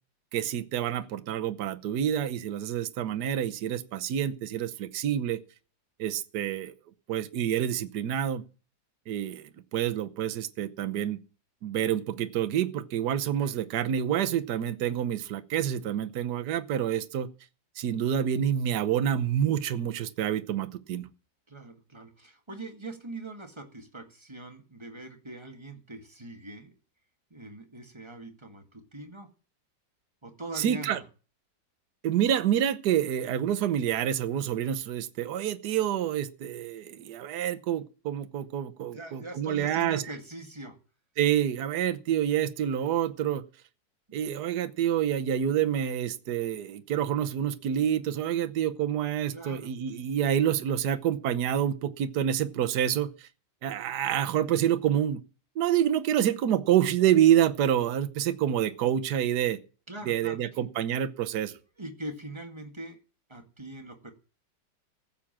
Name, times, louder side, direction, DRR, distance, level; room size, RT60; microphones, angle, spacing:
voice 1, 0.3-5.4 6.0-6.7 7.1-8.4 9.1-11.2 11.6-17.3 17.8-21.1 30.5-31.0 32.0-40.0 41.2-43.4 44.1-53.3 53.6-55.2 55.5-59.6 60.0-61.6, right 10 dB, 60° right, 1.4 m, -27 dB
voice 2, 21.5-26.7 27.3-29.3 30.2-31.0 38.8-40.8 49.3-49.7 59.9-60.4 61.8-63.0 63.3-64.1, right 2 dB, 15° right, 1.8 m, -42 dB
15.0 x 7.3 x 7.4 m
omnidirectional pair, 2.1 m